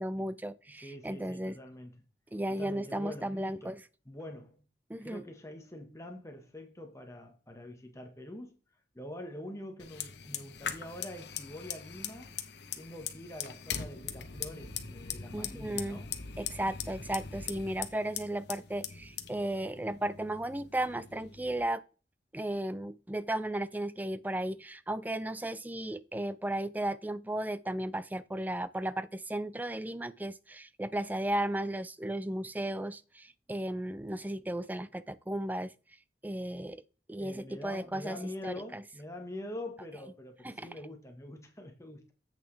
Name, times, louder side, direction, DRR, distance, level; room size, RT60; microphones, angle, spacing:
voice 1, 0.0-1.6 2.3-3.8 4.9-5.2 15.3-16.0 16.4-21.8 22.3-35.7 36.2-36.8 37.1-38.2 38.4-38.8 40.4-40.7, right 1 dB, 10° right, 0.3 m, -35 dB
voice 2, 0.8-2.0 2.5-3.7 4.0-4.6 5.0-8.6 8.9-12.3 12.7-16.1 37.2-42.1, left 1 dB, 15° left, 1.3 m, -45 dB
Fire, 9.8-21.6, left 8 dB, 70° left, 0.9 m, -41 dB
8.2 x 6.7 x 3.3 m
head